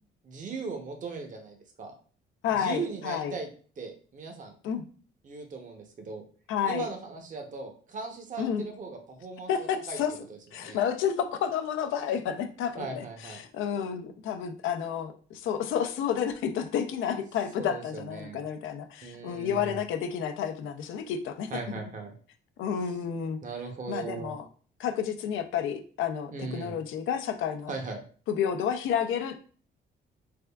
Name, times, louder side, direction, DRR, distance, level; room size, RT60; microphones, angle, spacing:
voice 1, 0.2-1.9 2.5-3.5 3.8-4.5 5.2-6.2 6.6-10.0 10.3-10.8 12.8-13.4 17.6-18.4 19.0-19.8 21.5-22.1 23.4-24.3 26.3-26.8 27.7-28.0, right 4 dB, 40° right, 4 dB, 0.7 m, -38 dB
voice 2, 2.4-3.4 4.6-4.8 6.5-6.9 8.4-8.6 9.5-10.1 10.5-21.5 22.6-23.4 23.9-24.5 24.8-27.7 28.3-29.5, left 8 dB, 85° left, 8 dB, 0.5 m, -30 dB
3.4 x 3.4 x 2.3 m, 0.42 s
cardioid pair, 90°, 20 cm